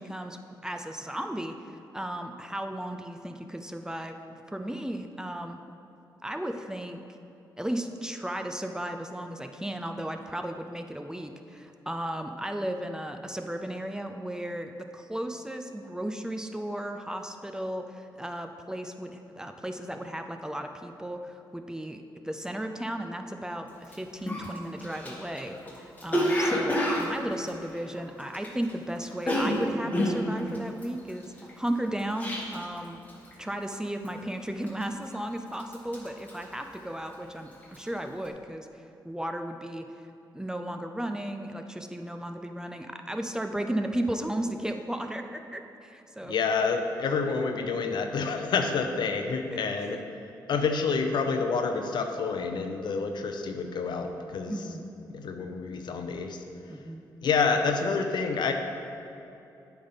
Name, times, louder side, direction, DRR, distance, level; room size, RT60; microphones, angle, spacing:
voice 1, 0.0-5.6 6.2-7.0 7.6-33.0 33.4-39.9 40.3-46.3 47.2-47.3 49.5-50.0 54.5-54.9 56.7-57.1, right 1 dB, 10° right, 5 dB, 0.5 m, -35 dB
Cough, 23.8-23.9 24.3-28.7 29.0-32.8 33.1-33.4 33.7-34.2 34.7-35.3 35.6-37.2 37.5-37.9, equal, 20° left, 1.4 m, -29 dB
voice 2, 46.2-50.0 50.5-54.5 55.1-56.4 57.2-58.5, left 5 dB, 65° left, 5 dB, 0.6 m, -28 dB
8.6 x 3.5 x 5.7 m, 2.7 s
cardioid pair, 70°, 8 cm